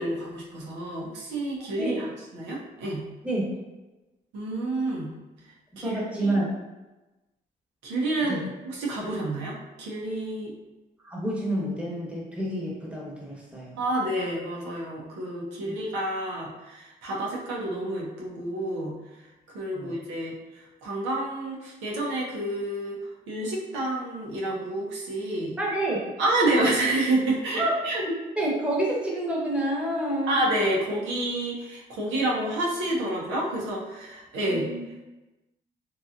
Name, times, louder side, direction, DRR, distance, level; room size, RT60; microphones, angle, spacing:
voice 1, 0.0-3.0 4.3-5.1 5.8-6.4 7.8-8.4 8.6-10.5 13.8-18.9 19.5-23.0 23.3-25.6 26.2-28.0 30.3-34.7, right 1 dB, 90° right, -4 dB, 0.6 m, -29 dB
voice 2, 1.6-2.0 3.2-3.5 5.8-6.5 8.3-8.4 11.0-13.8 15.6-15.8 19.7-20.0 25.6-26.1 27.6-27.8 28.0-30.4 34.5-34.8, right 1 dB, 5° right, -4 dB, 1.0 m, -29 dB
2.8 x 2.3 x 2.4 m, 1.1 s
supercardioid pair, 50°, 18 cm